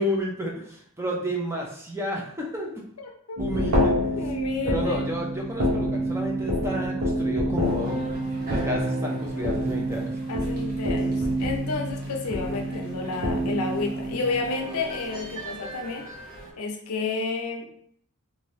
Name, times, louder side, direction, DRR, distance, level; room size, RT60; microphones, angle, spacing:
voice 1, 0.0-2.8 3.4-4.1 4.6-8.1 8.5-10.1, equal, 10° right, -1 dB, 0.5 m, -31 dB
voice 2, 3.0-3.4 4.1-5.1 10.3-16.0 16.6-17.7, left 3 dB, 80° left, 2 dB, 0.6 m, -31 dB
sound 1, 3.4-15.0, equal, 90° right, 0.9 m, -27 dB
sound 2, 7.6-16.5, right 1 dB, 40° right, 0.9 m, -38 dB
2.8 x 2.6 x 3.1 m, 0.64 s
head